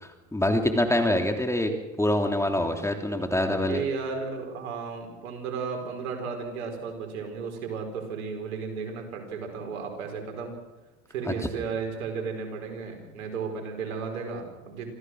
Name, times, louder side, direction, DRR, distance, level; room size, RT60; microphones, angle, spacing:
voice 1, 0.3-1.7 2.0-3.8 11.3-11.4, left 1 dB, 5° left, 4 dB, 3.0 m, -25 dB
voice 2, 3.5-10.5 11.1-14.9, right 5 dB, 90° right, 4 dB, 5.1 m, -34 dB
26.5 x 15.0 x 6.5 m, 1.1 s
supercardioid pair, 95°, 40 cm